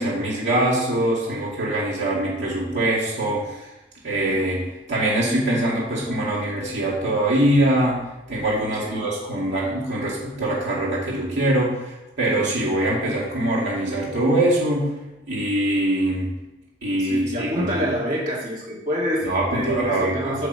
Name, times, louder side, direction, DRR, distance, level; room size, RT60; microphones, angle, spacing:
voice 1, 0.0-3.7 4.0-8.0 8.3-14.9 15.3-16.3 16.8-17.7 19.2-20.3, right 1 dB, 80° right, -6 dB, 2.4 m, -23 dB
voice 2, 17.0-20.5, equal, 45° right, -7 dB, 2.7 m, -26 dB
6.3 x 4.8 x 6.8 m, 1.0 s
head